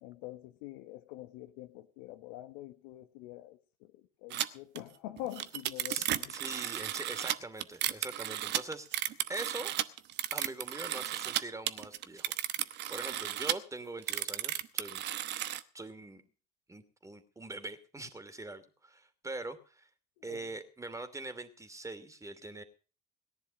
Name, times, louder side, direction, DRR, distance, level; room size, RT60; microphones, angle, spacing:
voice 1, 0.0-3.9 4.2-6.3 20.3-20.5, left 15 dB, 70° left, 1.2 m, -45 dB
sound 1, 4.3-4.5 4.8-4.9 5.2-11.4 11.7-13.6 14.0-15.6, right 13 dB, 55° right, 1.0 m, -34 dB
voice 2, 5.9-9.7 10.3-12.3 12.9-15.0 15.7-16.2 16.7-19.9 20.2-22.6, right 2 dB, 15° right, 2.6 m, -43 dB
18.0 x 10.5 x 5.2 m
hypercardioid pair, 70°, 21 cm